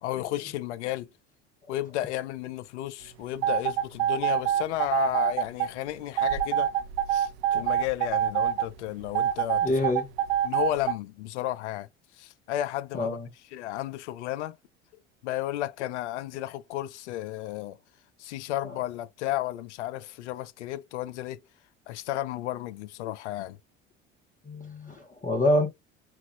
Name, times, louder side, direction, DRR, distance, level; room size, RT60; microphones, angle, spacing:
voice 1, 0.0-1.1 1.7-6.7 7.1-9.6 10.4-11.9 12.2-13.2 13.5-14.6 15.2-17.8 18.2-21.4 21.9-23.6, left 14 dB, 70° left, 0.6 m, -33 dB
sound 1, 3.4-5.7 6.2-8.7 9.2-10.9, right 10 dB, 65° right, 0.6 m, -25 dB
voice 2, 9.6-10.0 12.9-13.3 24.5-25.7, left 1 dB, 20° left, 1.2 m, -26 dB
5.7 x 2.5 x 2.3 m
figure-of-eight pair, 65°, 36 cm